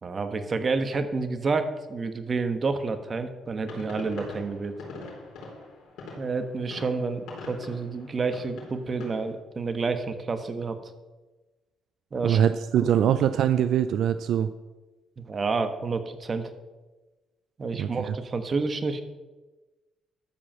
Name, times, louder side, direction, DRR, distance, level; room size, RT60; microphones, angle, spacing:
voice 1, 0.0-4.8 6.2-10.9 12.1-12.4 12.8-12.9 15.2-16.5 17.6-19.0, right 4 dB, 40° right, 8 dB, 1.2 m, -29 dB
sound 1, 3.6-9.3, left 3 dB, 85° left, 4.1 m, -43 dB
voice 2, 12.2-14.5 17.8-18.2, right 9 dB, 75° right, 11 dB, 0.4 m, -23 dB
12.5 x 5.0 x 7.5 m, 1.2 s
cardioid pair, 90°, 0 cm